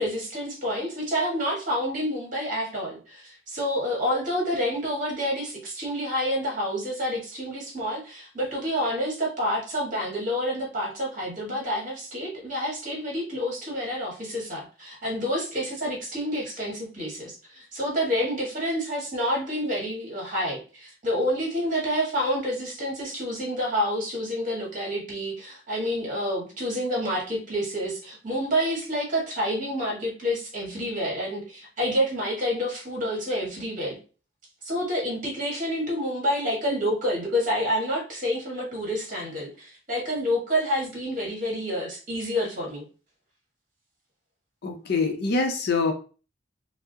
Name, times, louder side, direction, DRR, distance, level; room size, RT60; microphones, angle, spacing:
voice 1, 0.0-34.0 34.6-42.8, equal, 40° right, -2 dB, 1.5 m, -28 dB
voice 2, 44.6-45.9, left 4 dB, 50° left, 4 dB, 0.5 m, -25 dB
5.8 x 2.0 x 2.7 m, 0.36 s
head